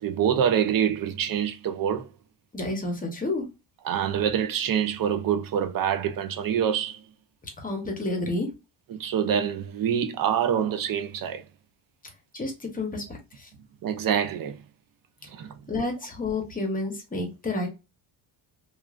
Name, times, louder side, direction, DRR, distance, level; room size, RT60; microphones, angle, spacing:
voice 1, 0.0-2.1 3.8-7.0 8.9-11.4 13.8-14.6 15.3-15.5, right 8 dB, 50° right, 0.5 m, -26 dB
voice 2, 2.5-3.4 7.6-8.5 12.3-13.0 13.3-13.5 15.7-17.7, left 2 dB, 20° left, 0.9 m, -30 dB
2.9 x 2.5 x 2.4 m
cardioid pair, 130°, 47 cm